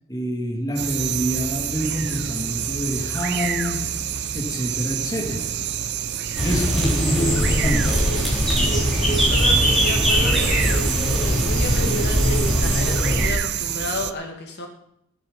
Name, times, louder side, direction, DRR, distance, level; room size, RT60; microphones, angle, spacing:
voice 1, 0.1-3.9 4.3-5.6 6.4-8.0, equal, 15° left, 2.6 m, -26 dB
sound 1, 0.8-14.1, right 9 dB, 55° right, 0.7 m, -28 dB
sound 2, 6.3-13.3, equal, ahead, 3.6 m, -21 dB
voice 2, 9.0-10.9 11.2-14.7, left 2 dB, 50° left, 2.4 m, -33 dB
17.0 x 7.7 x 5.6 m
head